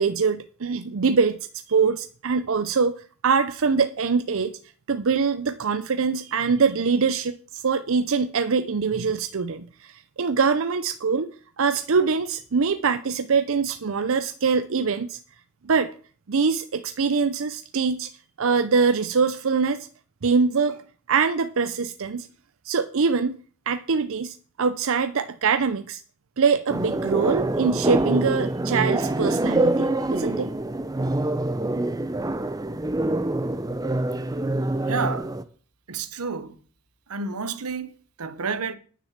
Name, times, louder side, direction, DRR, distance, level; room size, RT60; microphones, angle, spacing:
voice 1, 0.0-1.4 1.7-3.0 3.2-4.5 4.9-11.3 11.6-15.2 15.6-15.9 16.3-18.1 18.4-19.9 20.2-20.8 21.1-22.3 22.6-23.4 23.7-26.0 26.4-30.5, right 5 dB, 60° right, 0.6 m, -23 dB
sound 1, 26.7-35.4, right 2 dB, 15° right, 0.6 m, -25 dB
voice 2, 34.8-35.3 35.9-36.6 37.1-38.7, right 5 dB, 80° right, 1.0 m, -30 dB
10.0 x 6.7 x 7.3 m
head